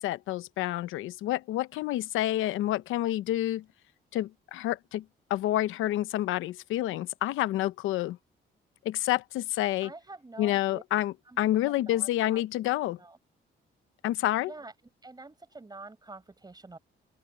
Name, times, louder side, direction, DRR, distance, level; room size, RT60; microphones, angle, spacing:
voice 1, 0.0-3.6 4.1-5.0 5.3-8.2 8.8-9.9 10.4-13.0 14.0-14.5, left 14 dB, 90° left, 0.8 m, -28 dB
voice 2, 9.8-10.8 11.2-12.4 13.0-13.2 14.5-14.7 15.0-16.8, right 3 dB, 20° right, 4.8 m, -47 dB
open air
cardioid pair, 90°, 20 cm